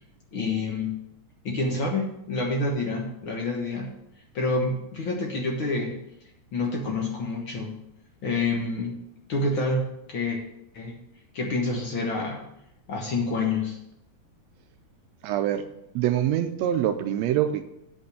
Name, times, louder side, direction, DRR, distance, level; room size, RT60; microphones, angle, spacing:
voice 1, 0.3-0.9 1.4-3.9 4.3-6.0 6.5-7.7 8.2-9.0 9.3-10.4 10.7-11.0 11.3-12.4 12.9-13.8, left 2 dB, 55° left, 0 dB, 1.5 m, -28 dB
voice 2, 15.2-15.6 15.9-17.7, right 11 dB, 80° right, 8 dB, 1.5 m, -24 dB
8.7 x 5.3 x 6.6 m, 0.81 s
omnidirectional pair, 3.6 m